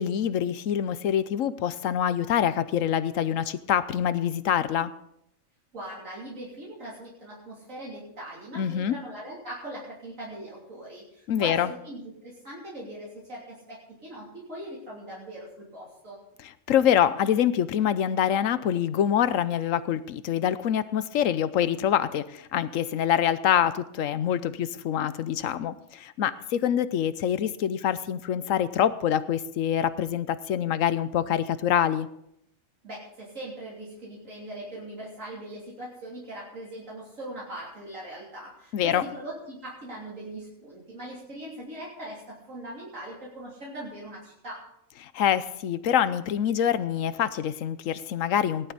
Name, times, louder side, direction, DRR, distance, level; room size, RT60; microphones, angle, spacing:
voice 1, 0.0-4.9 8.5-9.0 11.3-11.7 16.7-32.1 38.7-39.0 45.0-48.7, left 9 dB, 85° left, 14 dB, 1.1 m, -25 dB
voice 2, 5.7-16.2 32.8-44.7, right 1 dB, 85° right, -6 dB, 3.5 m, -40 dB
18.0 x 11.5 x 4.1 m, 0.76 s
omnidirectional pair, 1.3 m